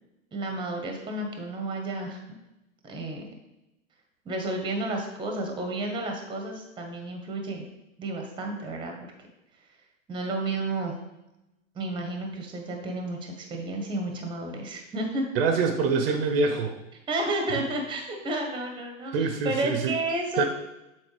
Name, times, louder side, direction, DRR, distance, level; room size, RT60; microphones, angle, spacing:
voice 1, 0.3-2.2 2.8-3.2 4.2-7.7 8.0-9.0 10.1-11.0 11.7-15.2 17.1-20.4, right 2 dB, 10° right, 3 dB, 0.9 m, -31 dB
voice 2, 15.3-16.8 19.1-19.9 20.4-20.5, right 4 dB, 50° right, 5 dB, 0.7 m, -25 dB
7.1 x 4.2 x 3.2 m, 0.95 s
hypercardioid pair, 125°, 39 cm